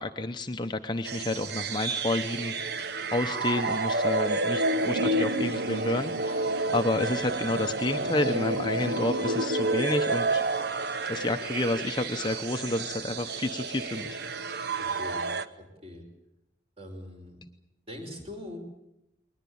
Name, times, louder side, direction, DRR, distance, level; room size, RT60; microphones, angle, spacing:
voice 1, 0.0-2.8 3.1-10.4 11.1-14.2, left 2 dB, 25° left, 6 dB, 0.8 m, -30 dB
sound 1, 1.0-15.5, right 2 dB, 55° right, 1.0 m, -30 dB
voice 2, 14.8-15.3 15.6-16.1 16.8-17.4 17.9-18.6, left 1 dB, 30° right, 3 dB, 5.2 m, -42 dB
21.5 x 20.0 x 8.7 m, 0.84 s
head